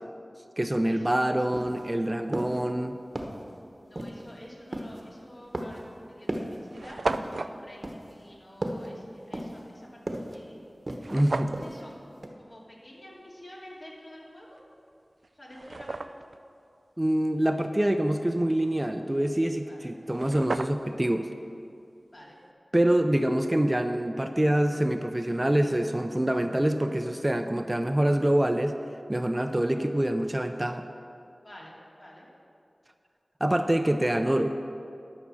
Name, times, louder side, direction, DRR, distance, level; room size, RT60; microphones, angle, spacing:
voice 1, 0.6-3.0 11.1-11.6 17.0-21.3 22.7-28.7 29.1-30.9 33.4-34.7, right 1 dB, 25° right, 7 dB, 0.5 m, -25 dB
sound 1, 1.0-1.1 1.5-1.9 2.3-2.6 3.1-3.5 4.0-4.3 4.7-5.0 5.5-5.9 6.3-6.6 7.1-7.4 7.8-8.2 8.6-8.9 9.3-9.7 10.1-10.4 10.9-11.2 11.5-11.9 12.2-12.3, right 1 dB, 45° right, 1.1 m, -35 dB
voice 2, 3.9-7.0 7.4-7.8 8.1-10.6 11.6-12.0 12.4-14.6 15.4-15.9 19.7-19.9 22.1-22.4 31.4-32.3, left 1 dB, 55° left, -5 dB, 2.5 m, -49 dB
sound 2, 5.2-5.4 6.1-6.2 6.4-6.5 6.7-7.6 11.0-11.7 14.6-14.7 15.2-16.4 19.7-19.8 20.0-21.0, right 3 dB, 80° right, 0.3 m, -34 dB
11.5 x 6.5 x 6.2 m, 2.5 s
wide cardioid pair, 45°, 0 cm